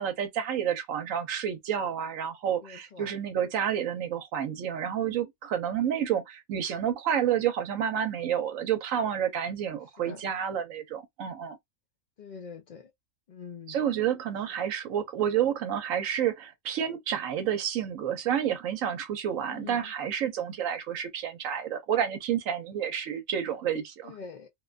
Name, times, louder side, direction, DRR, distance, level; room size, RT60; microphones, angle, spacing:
voice 1, 0.0-11.6 13.7-24.1, right 9 dB, 75° right, 1.0 m, -29 dB
voice 2, 2.6-3.1 10.0-10.2 12.2-12.9 13.3-13.8 19.5-19.9 24.0-24.5, left 6 dB, 75° left, 0.4 m, -44 dB
2.6 x 2.2 x 2.4 m
omnidirectional pair, 1.4 m